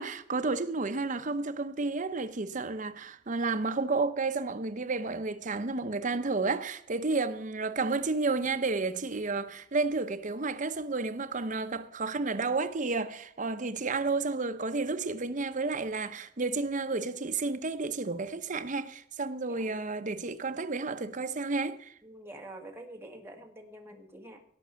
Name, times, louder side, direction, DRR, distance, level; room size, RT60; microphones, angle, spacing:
voice 1, 0.0-21.9, right 3 dB, 45° right, 0.8 m, -31 dB
voice 2, 22.0-24.4, right 1 dB, 15° right, 2.0 m, -47 dB
17.5 x 6.1 x 6.9 m
head